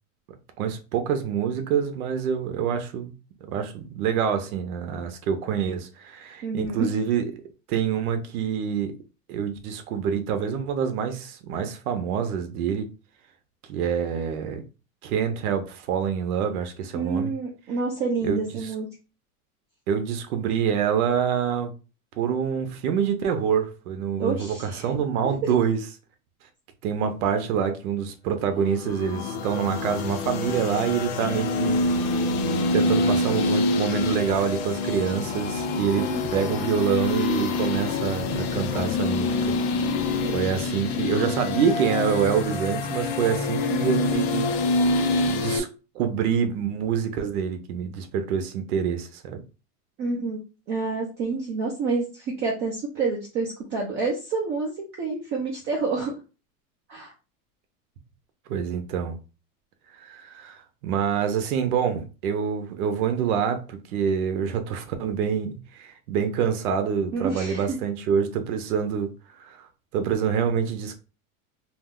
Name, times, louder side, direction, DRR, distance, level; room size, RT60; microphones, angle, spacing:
voice 1, 0.6-3.1 3.5-7.3 7.7-8.9 9.3-12.9 13.7-14.6 15.0-17.3 18.2-18.5 19.9-21.7 22.2-25.8 26.8-31.8 32.7-36.1 36.3-39.4 40.3-44.5 45.3-45.7 45.9-49.4 58.5-59.2 60.0-69.1 69.4-69.6 69.9-71.0, right 7 dB, 80° right, 0.7 m, -26 dB
voice 2, 6.4-6.9 16.9-18.9 24.2-24.9 36.0-36.2 40.2-40.4 50.0-50.4 50.7-54.7 55.0-56.1 56.9-57.1 67.1-67.8, right 4 dB, 25° right, 0.5 m, -28 dB
sound 1, 28.7-45.6, left 3 dB, 50° left, 0.5 m, -26 dB
2.5 x 2.1 x 3.6 m
supercardioid pair, 155°, 43 cm